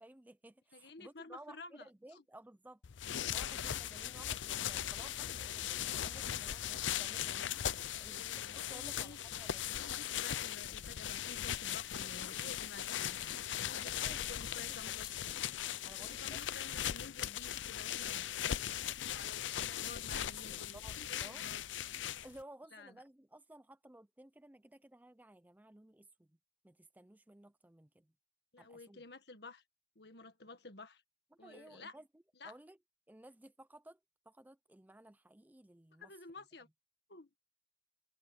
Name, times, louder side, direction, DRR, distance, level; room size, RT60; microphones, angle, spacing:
voice 1, 0.0-2.8 3.3-7.6 8.0-9.9 13.6-14.3 14.7-15.2 15.8-16.4 20.5-21.5 22.2-26.4 26.6-28.1 28.6-29.0 31.4-32.8 33.1-34.0 34.3-36.1, right 1 dB, 10° right, 0.5 m, -57 dB
voice 2, 0.7-1.9 7.8-9.2 9.8-15.1 15.8-21.6 21.9-22.0 22.7-22.9 28.5-29.6 29.9-31.0 31.4-31.9 32.4-32.5 36.0-36.7 37.1-37.3, left 3 dB, 65° left, 1.7 m, -52 dB
sound 1, 2.8-22.4, left 10 dB, 90° left, 0.6 m, -39 dB
sound 2, 13.2-13.4 13.9-14.1 14.4-14.6 15.0-15.2 15.6-15.7 16.1-16.3 16.7-16.9 17.5-17.6 18.2-18.3, left 6 dB, 25° left, 6.7 m, -58 dB
head